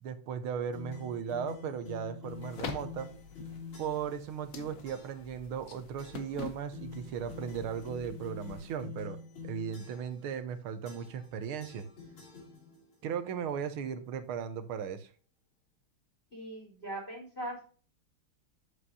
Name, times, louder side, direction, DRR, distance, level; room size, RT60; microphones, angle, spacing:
voice 1, 0.0-3.1 3.8-9.2 9.4-11.9 13.0-15.1, right 7 dB, 80° right, 11 dB, 1.7 m, -37 dB
sound 1, 0.7-4.2 4.8-5.3 6.0-6.4 6.7-10.2 10.8-11.3 11.6-12.9, left 5 dB, 75° left, 3.5 m, -46 dB
sound 2, 2.3-8.8, left 5 dB, 55° left, 1.1 m, -46 dB
voice 2, 16.3-17.7, right 1 dB, 25° left, -2 dB, 4.2 m, -40 dB
8.0 x 7.8 x 2.6 m, 0.40 s
omnidirectional pair, 2.4 m